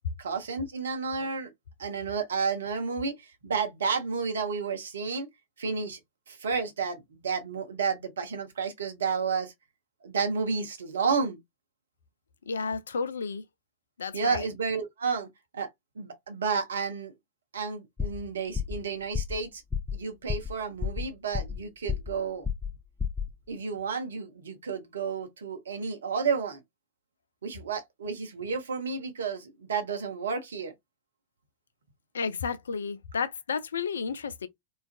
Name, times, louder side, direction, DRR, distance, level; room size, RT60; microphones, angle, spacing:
voice 1, 0.2-1.5 1.8-5.3 5.6-6.0 6.3-9.5 10.0-11.4 14.1-15.3 15.5-15.7 16.0-17.1 17.5-19.6 19.9-22.5 23.5-26.6 27.4-30.7, right 5 dB, 65° right, 0.6 m, -31 dB
voice 2, 12.5-13.4 14.0-14.5 32.1-34.5, left 5 dB, 70° left, 0.3 m, -32 dB
sound 1, 18.0-18.3 18.5-18.8 19.1-19.4 19.7-20.0 20.3-20.5 20.8-21.6 21.9-22.2 22.4-22.7 23.0-23.3, left 6 dB, 10° left, 0.6 m, -30 dB
2.4 x 2.3 x 2.4 m
figure-of-eight pair, 90°, 0 cm